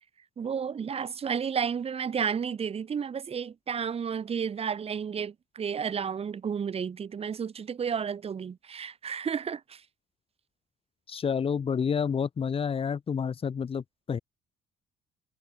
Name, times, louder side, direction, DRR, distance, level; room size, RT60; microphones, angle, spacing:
voice 1, 0.4-9.8, right 7 dB, 35° right, 1.8 m, -32 dB
voice 2, 11.1-14.2, left 6 dB, 35° left, 1.6 m, -29 dB
cardioid pair, 110°, 17 cm